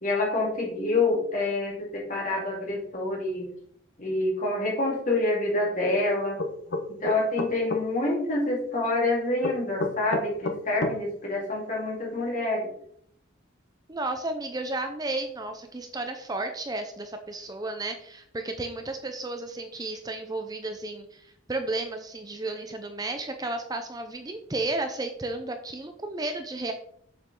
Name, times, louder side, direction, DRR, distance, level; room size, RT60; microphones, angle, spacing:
voice 1, 0.0-3.5 4.0-6.4 6.9-12.7, left 2 dB, 40° left, -2 dB, 2.6 m, -27 dB
sound 1, 6.4-7.8 9.4-11.0, left 2 dB, 55° left, 0.9 m, -29 dB
voice 2, 13.9-26.7, right 2 dB, 20° right, 6 dB, 0.6 m, -33 dB
7.3 x 7.2 x 3.8 m, 0.67 s
head